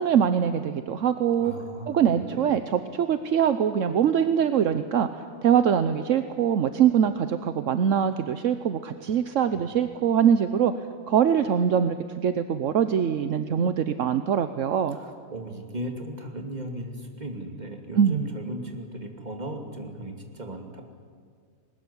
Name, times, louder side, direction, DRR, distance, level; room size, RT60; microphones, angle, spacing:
voice 1, 0.0-1.5 1.9-5.1 5.4-10.7 11.1-15.0 18.0-18.3, right 8 dB, 70° right, 10 dB, 1.2 m, -23 dB
voice 2, 1.4-2.5 9.4-9.6 14.9-20.8, right 1 dB, 30° right, 3 dB, 2.7 m, -37 dB
21.0 x 19.5 x 9.7 m, 2.1 s
omnidirectional pair, 1.4 m